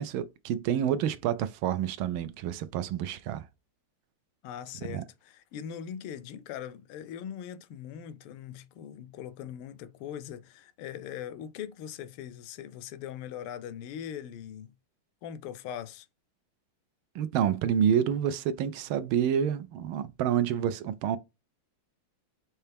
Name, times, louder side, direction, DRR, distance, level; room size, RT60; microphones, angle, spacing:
voice 1, 0.0-3.4 4.9-5.0 17.1-21.2, right 9 dB, 75° right, 1.3 m, -28 dB
voice 2, 4.4-14.7 15.2-16.1, left 9 dB, 80° left, 1.5 m, -41 dB
5.5 x 2.8 x 3.3 m
omnidirectional pair, 2.4 m